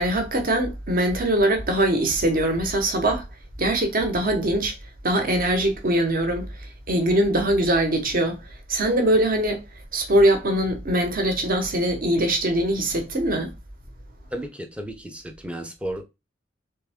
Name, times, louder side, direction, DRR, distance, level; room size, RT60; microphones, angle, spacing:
voice 1, 0.0-3.2 3.6-4.7 5.0-6.5 6.9-8.4 8.7-9.6 9.9-13.5, right 1 dB, 50° right, 1.0 m, -22 dB
voice 2, 14.3-16.0, right 1 dB, 5° right, 0.6 m, -33 dB
3.5 x 3.4 x 3.5 m
head